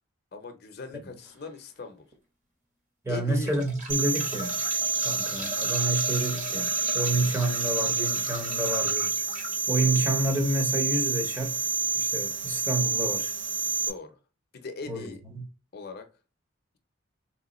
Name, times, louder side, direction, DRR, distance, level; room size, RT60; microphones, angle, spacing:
voice 1, 0.3-2.1 3.1-3.5 13.9-14.1 14.5-15.2 15.7-16.1, left 3 dB, 50° left, 0.5 m, -39 dB
sound 1, 1.2-1.5 2.1-2.2 3.2-9.6 11.1-11.3 11.5-11.6, equal, 35° right, 1.0 m, -38 dB
voice 2, 3.0-4.6 5.0-9.3 9.7-11.7 12.0-13.3 14.9-15.4, right 2 dB, 15° right, 0.6 m, -29 dB
sound 2, 3.9-13.9, right 4 dB, 65° right, 0.7 m, -29 dB
3.3 x 3.0 x 4.0 m
head